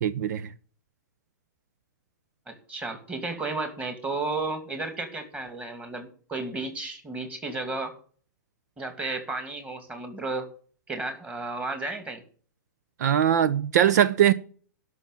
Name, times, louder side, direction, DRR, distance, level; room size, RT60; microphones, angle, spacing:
voice 1, 0.0-0.5 13.0-14.3, right 10 dB, 65° right, 0.7 m, -21 dB
voice 2, 2.5-8.0 8.8-10.5 10.9-12.2, right 3 dB, 15° right, 2.6 m, -33 dB
12.0 x 6.1 x 8.9 m
hypercardioid pair, 135°, 10 cm